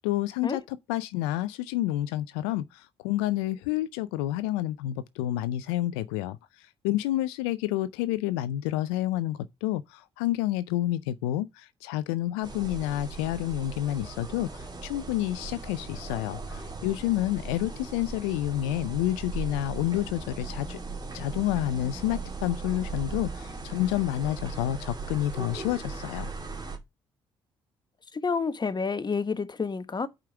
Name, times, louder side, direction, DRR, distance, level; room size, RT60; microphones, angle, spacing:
voice 1, 0.0-20.8 21.1-26.3, left 14 dB, 85° left, 0.4 m, -29 dB
sound 1, 12.4-26.8, right 3 dB, 30° right, 2.5 m, -38 dB
voice 2, 28.1-30.1, left 5 dB, 35° left, 1.2 m, -29 dB
7.4 x 5.0 x 5.8 m
hypercardioid pair, 50°, 13 cm